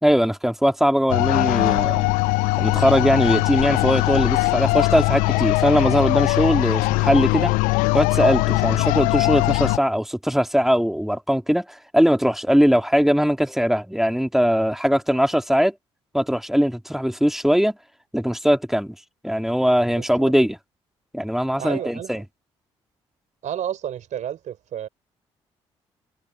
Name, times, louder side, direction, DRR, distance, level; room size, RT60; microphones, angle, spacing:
voice 1, 0.0-2.1 2.6-7.5 7.9-15.7 16.1-17.8 18.1-19.0 19.2-20.6 21.1-22.2, equal, ahead, 3.2 m, -20 dB
sound 1, 1.1-9.8, left 24 dB, 75° left, 0.8 m, -20 dB
voice 2, 19.9-20.3 21.6-22.2 23.4-24.9, right 10 dB, 60° right, 4.3 m, -31 dB
hypercardioid pair, 45°, 14 cm